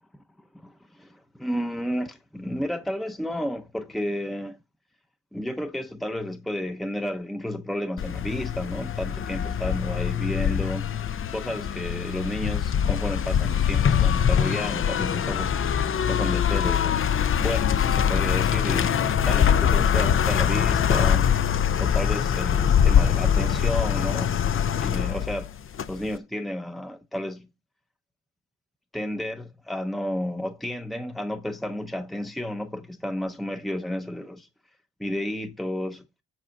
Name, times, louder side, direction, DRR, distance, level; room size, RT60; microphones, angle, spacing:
voice 1, 0.5-4.6 5.3-15.6 16.1-17.0 17.4-21.4 21.8-25.5 25.9-27.5 28.9-34.5 35.0-36.0, left 1 dB, ahead, 0.8 m, -32 dB
sound 1, 8.0-26.1, left 8 dB, 45° left, 0.7 m, -23 dB
8.9 x 4.1 x 5.9 m
cardioid pair, 90°, 30 cm